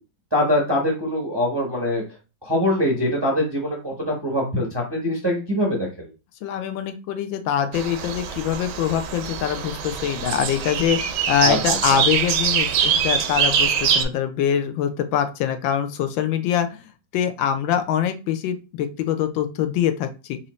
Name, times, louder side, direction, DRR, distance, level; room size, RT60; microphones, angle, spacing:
voice 1, 0.3-2.0 2.4-6.1 11.4-11.6 11.9-12.0, left 1 dB, 30° right, -2 dB, 0.4 m, -23 dB
voice 2, 6.4-16.9 17.1-20.4, left 9 dB, 85° left, 8 dB, 1.3 m, -24 dB
sound 1, 7.7-14.0, right 7 dB, 70° right, 1.1 m, -23 dB
4.1 x 2.6 x 3.1 m, 0.31 s
omnidirectional pair, 2.1 m